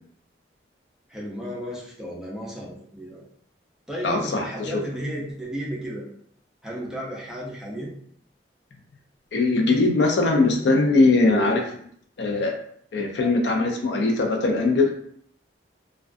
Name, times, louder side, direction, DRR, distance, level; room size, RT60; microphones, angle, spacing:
voice 1, 1.1-3.2 3.9-6.1 6.6-7.9, equal, 5° right, -5 dB, 0.4 m, -33 dB
voice 2, 4.0-4.8 9.3-11.6 12.2-12.5 12.9-14.9, left 3 dB, 70° left, 2 dB, 0.4 m, -21 dB
2.2 x 2.2 x 2.4 m, 0.65 s
head